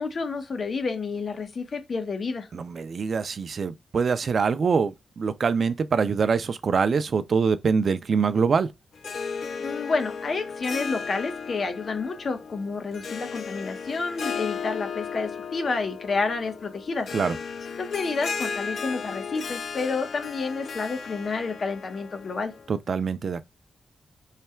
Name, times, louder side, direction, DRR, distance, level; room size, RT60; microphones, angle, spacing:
voice 1, 0.0-2.5 9.6-17.1 17.8-22.5, left 4 dB, 50° left, 0.9 m, -29 dB
voice 2, 2.5-8.7 17.1-17.4 22.7-23.5, right 5 dB, 50° right, 0.4 m, -24 dB
Harp, 8.9-22.7, left 6 dB, 65° left, 0.4 m, -35 dB
3.3 x 2.2 x 4.3 m
wide cardioid pair, 130°, 0 cm